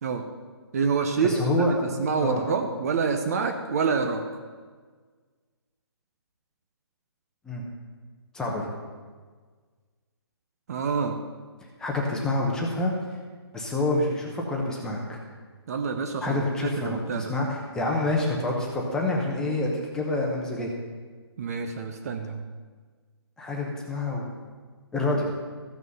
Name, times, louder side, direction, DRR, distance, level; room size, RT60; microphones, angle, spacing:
voice 1, 0.7-1.5 2.0-4.2 10.7-11.2 15.7-17.3 21.4-22.4, right 5 dB, 35° right, 5 dB, 0.7 m, -27 dB
voice 2, 1.2-1.7 2.2-2.5 7.4-7.6 8.3-8.7 11.8-12.9 13.5-15.2 16.2-20.7 23.4-24.2 24.9-25.3, left 2 dB, 5° left, -2 dB, 0.9 m, -27 dB
14.5 x 6.1 x 5.5 m, 1.5 s
hypercardioid pair, 165°, 14 cm